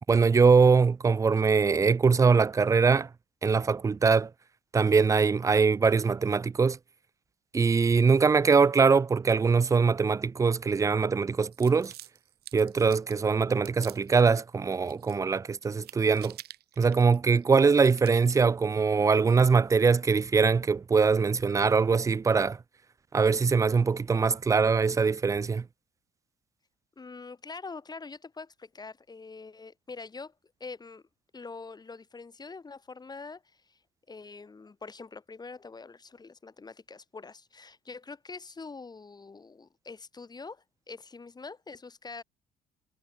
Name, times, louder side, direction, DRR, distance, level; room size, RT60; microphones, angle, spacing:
voice 1, 0.1-3.1 3.4-4.3 4.7-6.8 7.5-11.9 12.5-16.4 16.8-22.6 23.1-25.6, right 5 dB, 20° right, 0.4 m, -22 dB
sound 1, 11.5-13.2 13.7-14.4 14.7-15.4 15.6-17.5 17.8-18.4, right 14 dB, 70° right, 2.0 m, -48 dB
voice 2, 27.0-30.3 30.6-31.0 31.3-33.8 34.1-42.2, left 4 dB, 25° left, 7.9 m, -44 dB
cardioid pair, 110°, 17 cm